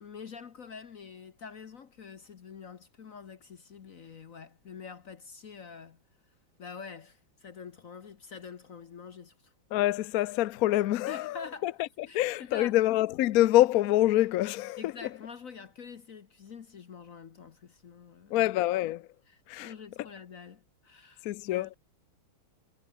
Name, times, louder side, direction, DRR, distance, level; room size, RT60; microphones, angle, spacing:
voice 1, 0.0-6.0 6.6-9.5 11.1-12.8 14.8-18.4 19.3-21.8, left 6 dB, 50° left, 1.3 m, -46 dB
voice 2, 9.7-11.7 12.1-14.9 18.3-19.0 19.5-19.7 21.2-21.7, left 15 dB, 75° left, 0.8 m, -26 dB
omnidirectional pair, 2.2 m